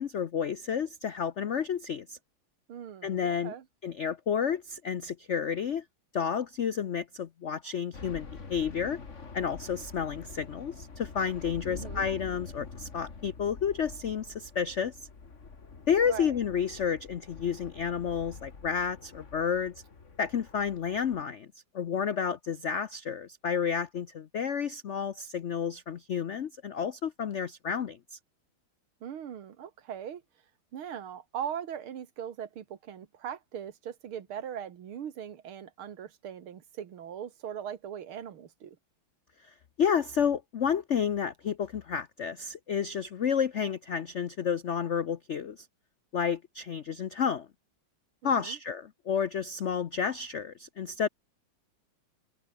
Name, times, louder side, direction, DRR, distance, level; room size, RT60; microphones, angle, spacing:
voice 1, 0.0-2.2 3.0-3.5 3.8-5.8 6.1-9.0 9.3-15.0 15.9-19.7 20.2-21.5 21.7-28.2 39.4-45.7 46.1-47.5 48.2-51.1, left 7 dB, 75° left, 0.6 m, -31 dB
voice 2, 2.7-3.7 11.7-12.1 16.1-16.4 29.0-30.2 30.7-38.8 48.2-48.6, right 9 dB, 85° right, 2.4 m, -40 dB
sound 1, 7.9-21.2, left 4 dB, 35° left, 2.3 m, -46 dB
omnidirectional pair, 2.3 m